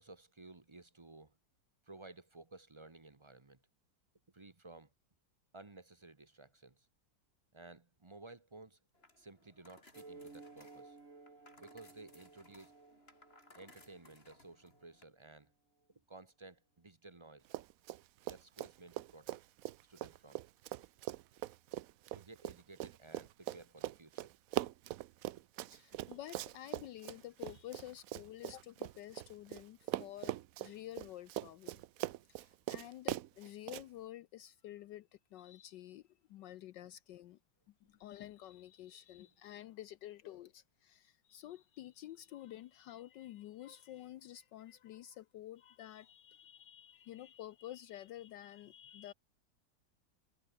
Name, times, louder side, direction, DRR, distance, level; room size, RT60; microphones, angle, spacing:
voice 1, 0.0-1.4 1.8-3.6 4.3-4.9 5.5-6.9 7.5-8.8 9.2-11.0 11.6-12.7 13.5-15.5 16.1-17.5 18.3-19.4 19.8-20.4 22.1-24.3, right 2 dB, 20° right, 0.9 m, -55 dB
sound 1, 8.9-15.0, left 2 dB, 30° left, 4.9 m, -64 dB
sound 2, 9.9-14.9, right 3 dB, 40° right, 3.4 m, -57 dB
Run, 17.5-18.0 18.3-29.6 29.9-33.8, right 14 dB, 75° right, 0.8 m, -41 dB
voice 2, 25.6-31.8 32.3-37.4 37.9-49.1, left 13 dB, 75° left, 1.3 m, -50 dB
omnidirectional pair, 2.0 m